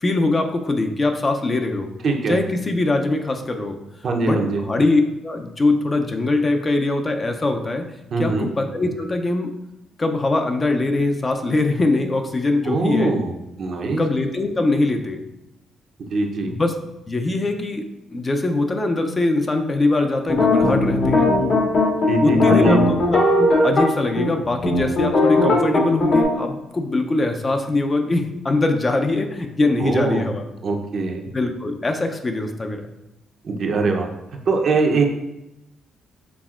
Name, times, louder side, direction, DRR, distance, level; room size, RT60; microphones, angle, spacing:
voice 1, 0.0-1.9 2.3-3.8 4.2-7.9 8.2-9.5 10.0-13.1 14.0-15.2 16.4-16.8 17.1-17.9 18.1-21.3 22.2-23.2 23.6-30.4 31.3-32.8, left 2 dB, 30° left, 5 dB, 0.5 m, -22 dB
voice 2, 2.0-2.4 4.0-4.6 8.1-8.5 12.6-13.3 13.6-14.0 16.1-16.5 22.1-22.8 29.8-30.3 30.6-31.2 33.4-34.1 34.5-35.0, right 3 dB, 55° right, 2 dB, 0.7 m, -21 dB
sound 1, 20.3-23.9 24.1-24.3 24.6-26.2, left 2 dB, 60° left, 1.4 m, -17 dB
6.0 x 3.4 x 2.4 m, 0.92 s
cardioid pair, 90°, 0 cm